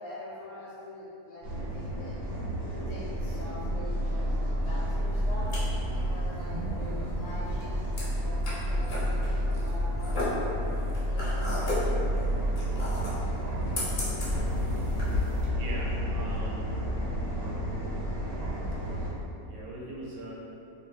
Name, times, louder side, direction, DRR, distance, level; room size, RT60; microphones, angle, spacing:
voice 1, 0.0-2.2 2.7-5.5 5.9-10.3 11.1-11.8, left 1 dB, 75° left, -6 dB, 1.0 m, -44 dB
sound 1, 1.4-19.1, equal, 50° right, 0.9 m, -30 dB
sound 2, 5.1-15.5, left 1 dB, 55° left, 0.5 m, -35 dB
voice 2, 15.5-16.7 19.5-20.3, right 1 dB, 75° right, -5 dB, 1.0 m, -40 dB
2.6 x 2.2 x 3.1 m, 2.8 s
omnidirectional pair, 1.7 m